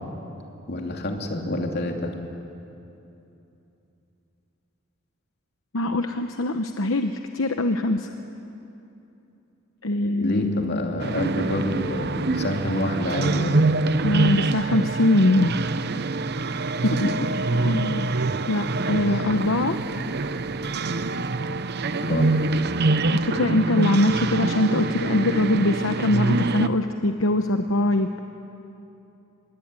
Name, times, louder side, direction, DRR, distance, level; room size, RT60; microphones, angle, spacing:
voice 1, 0.7-2.1 10.2-13.6 17.5-17.6 19.1-19.3 22.1-22.3, left 1 dB, 55° left, 2 dB, 2.9 m, -28 dB
voice 2, 5.7-8.1 9.8-11.0 14.0-15.5 16.8-16.9 17.6-18.1 18.5-19.8 23.1-28.2, left 1 dB, 75° left, 6 dB, 1.0 m, -23 dB
sound 1, 11.0-26.7, right 3 dB, 55° right, 0.8 m, -25 dB
25.5 x 22.0 x 9.7 m, 2.9 s
head